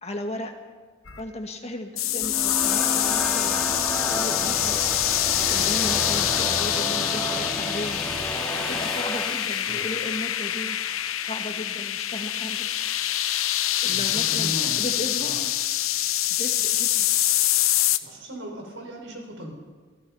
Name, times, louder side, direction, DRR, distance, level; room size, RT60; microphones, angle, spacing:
voice 1, 0.0-0.5 1.2-3.7 4.1-5.1 5.4-8.0 8.7-10.8 11.2-12.7 13.8-15.5 16.3-17.1, left 1 dB, 30° left, 4 dB, 2.0 m, -35 dB
sound 1, 1.0-1.2 2.2-6.7, left 2 dB, 75° left, 1.6 m, -44 dB
sound 2, 2.0-18.0, left 13 dB, 90° left, 0.9 m, -25 dB
sound 3, 2.0-9.8, equal, 5° left, 2.9 m, -31 dB
voice 2, 13.8-14.9 15.2-15.4 18.0-19.5, equal, 65° right, 1 dB, 6.3 m, -37 dB
27.0 x 17.0 x 5.7 m, 1.4 s
head